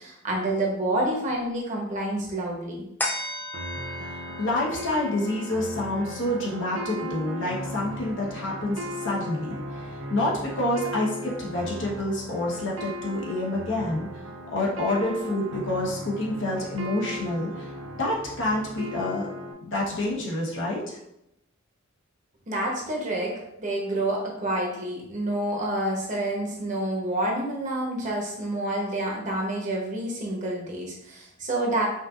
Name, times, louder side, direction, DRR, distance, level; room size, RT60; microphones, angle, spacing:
voice 1, 0.0-2.8 22.5-31.9, right 1 dB, 40° right, -2 dB, 1.0 m, -28 dB
sound 1, 3.0-9.8 10.2-10.3, left 1 dB, 10° left, 0.4 m, -38 dB
sound 2, 3.5-19.5, equal, 70° right, 0.5 m, -37 dB
voice 2, 4.4-14.1 14.5-17.7 18.0-19.3 19.6-21.0, left 1 dB, 65° left, -3 dB, 1.1 m, -28 dB
5.4 x 2.6 x 2.5 m, 0.81 s
head